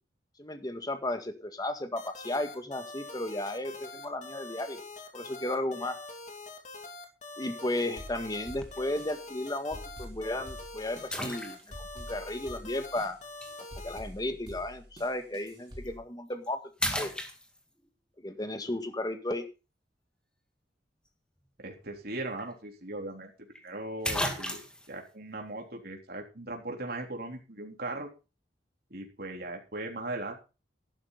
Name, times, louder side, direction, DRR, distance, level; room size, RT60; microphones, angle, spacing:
voice 1, 0.4-4.8 5.1-6.0 7.4-11.6 12.0-13.2 13.8-16.6 16.9-17.1 18.2-19.5, left 1 dB, 20° left, 7 dB, 1.8 m, -34 dB
sound 1, 2.0-14.0, left 3 dB, 40° left, 2.6 m, -44 dB
sound 2, 8.0-16.0, equal, 25° right, 6.2 m, -47 dB
sound 3, 8.6-8.9 9.6-9.7 11.1-11.9 13.4-13.5 15.7-15.9 16.3-16.5 16.8-17.9 22.0-22.1 22.4-22.5 23.6-23.7 24.0-24.9, left 1 dB, 5° left, 2.1 m, -34 dB
voice 2, 21.6-28.1 28.9-30.4, right 2 dB, 55° right, 1 dB, 3.5 m, -39 dB
13.5 x 12.0 x 4.0 m, 0.31 s
head